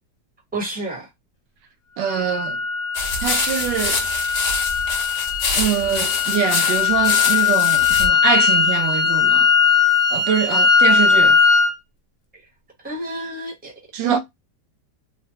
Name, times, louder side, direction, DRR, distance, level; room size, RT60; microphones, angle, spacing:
voice 1, 0.5-1.1 12.8-13.7 14.0-14.2, right 2 dB, 5° right, 0.9 m, -29 dB
voice 2, 2.0-2.6 3.2-4.1 5.6-9.5 10.1-11.4 13.9-14.2, right 9 dB, 90° right, 1.2 m, -24 dB
sound 1, 2.1-11.7, left 6 dB, 70° left, 1.0 m, -19 dB
sound 2, 2.9-8.1, left 3 dB, 45° left, 0.9 m, -25 dB
3.2 x 2.1 x 2.8 m
omnidirectional pair, 1.8 m